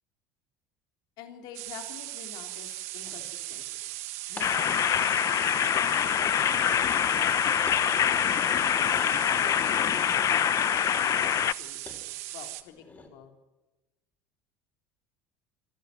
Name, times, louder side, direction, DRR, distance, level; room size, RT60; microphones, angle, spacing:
voice 1, 1.2-3.8 4.3-6.8 7.1-8.1 8.6-12.0 12.3-13.3, left 8 dB, 70° left, 4 dB, 3.1 m, -47 dB
sound 1, 1.5-12.6, right 16 dB, 80° right, 1.4 m, -39 dB
sound 2, 3.0-3.3 4.4-4.6 5.1-6.6 6.9-7.3 7.7-7.9 8.3-9.8 11.9-12.0 12.5-13.1, left 3 dB, 20° left, 5.9 m, -48 dB
sound 3, 4.4-11.5, left 10 dB, 45° left, 0.8 m, -25 dB
26.5 x 13.5 x 9.6 m, 1.1 s
hypercardioid pair, 85°, 8 cm